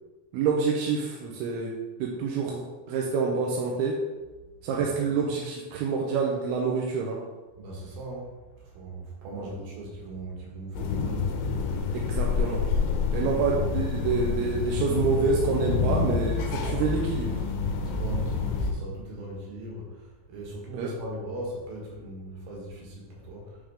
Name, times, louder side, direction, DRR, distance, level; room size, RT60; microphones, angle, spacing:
voice 1, 0.3-4.0 4.6-7.2 9.4-9.5 11.9-12.7 13.1-17.4 20.7-20.9, right 5 dB, 85° right, -2 dB, 2.5 m, -27 dB
voice 2, 4.7-5.2 7.6-11.3 13.1-13.5 13.8-14.3 17.8-23.6, right 1 dB, 70° right, -3 dB, 3.1 m, -39 dB
sound 1, 10.7-18.7, left 5 dB, 80° left, 2.4 m, -28 dB
8.6 x 3.6 x 3.4 m, 1.2 s
omnidirectional pair, 4.6 m